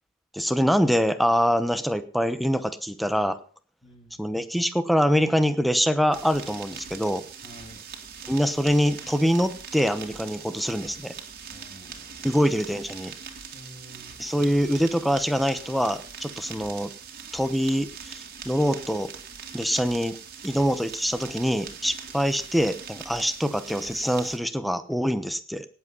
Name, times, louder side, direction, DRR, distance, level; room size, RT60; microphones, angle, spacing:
voice 1, 0.3-3.4 4.2-7.2 8.3-11.1 12.2-13.1 14.2-16.9 17.3-19.1 19.5-20.2 20.4-25.7, equal, ahead, 11 dB, 0.9 m, -24 dB
voice 2, 3.8-4.2 7.4-7.8 11.5-12.3 13.5-14.2, equal, 30° left, 5 dB, 2.6 m, -49 dB
sound 1, 6.1-24.4, right 6 dB, 50° right, 2.4 m, -42 dB
18.0 x 7.8 x 5.5 m, 0.42 s
head